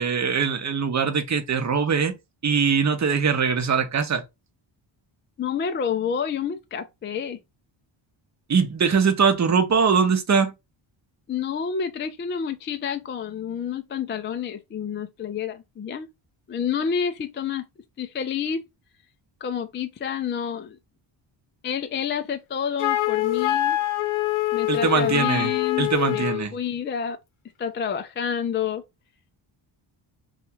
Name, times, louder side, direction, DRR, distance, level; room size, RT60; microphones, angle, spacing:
voice 1, 0.0-2.1 2.4-4.2 8.5-10.5 24.7-25.5 25.8-26.5, right 6 dB, 35° right, 0.8 m, -22 dB
voice 2, 5.4-7.4 11.3-16.1 16.5-17.7 18.0-18.7 19.4-20.8 21.6-23.8 24.5-26.3 26.5-27.2 27.6-28.8, left 7 dB, 25° left, 0.3 m, -29 dB
Wind instrument woodwind instrument, 22.8-26.5, left 15 dB, 70° left, 0.8 m, -24 dB
2.7 x 2.4 x 4.2 m
cardioid pair, 80°, 50 cm